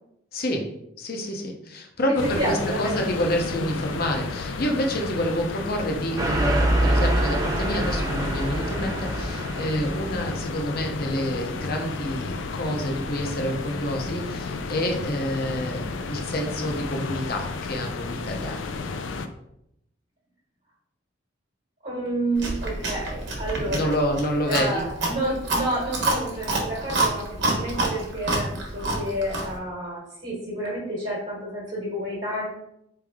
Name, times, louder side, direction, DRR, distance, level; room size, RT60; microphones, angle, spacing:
voice 1, 0.3-0.7 1.0-18.7 23.5-24.9, equal, 50° left, 2 dB, 0.8 m, -28 dB
voice 2, 2.1-3.0 21.8-23.9 24.5-32.4, right 1 dB, 45° right, -6 dB, 1.4 m, -30 dB
sound 1, 2.2-19.3, left 3 dB, 75° left, 0.4 m, -32 dB
sound 2, 6.2-10.3, right 1 dB, 20° right, 0.5 m, -25 dB
Chewing mastication, 22.4-29.6, right 2 dB, 60° right, 1.2 m, -28 dB
4.4 x 3.4 x 3.6 m, 0.79 s
head